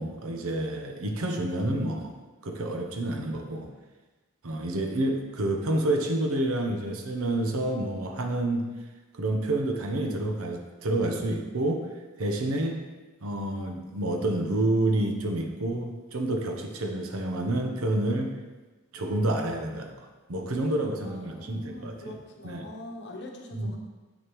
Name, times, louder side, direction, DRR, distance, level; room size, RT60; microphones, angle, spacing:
voice 1, 0.0-2.1 2.4-3.7 4.4-8.7 9.1-11.8 12.2-12.8 13.2-18.4 18.9-22.2 22.4-22.7 23.5-23.7, right 1 dB, 85° right, 3 dB, 0.8 m, -29 dB
voice 2, 21.0-23.8, left 1 dB, 55° left, 1 dB, 1.1 m, -43 dB
7.2 x 6.6 x 3.1 m, 1.3 s
head